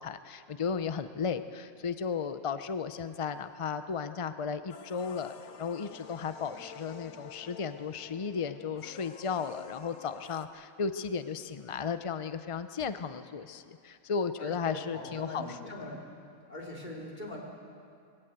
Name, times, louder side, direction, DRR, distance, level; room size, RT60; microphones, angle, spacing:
voice 1, 0.0-15.6, left 6 dB, 60° left, 10 dB, 0.3 m, -35 dB
sound 1, 4.7-10.5, left 6 dB, 75° left, 1.4 m, -49 dB
voice 2, 14.4-16.0 16.5-17.4, left 1 dB, 30° left, -2 dB, 3.7 m, -41 dB
21.0 x 17.0 x 8.1 m, 2.4 s
omnidirectional pair, 1.5 m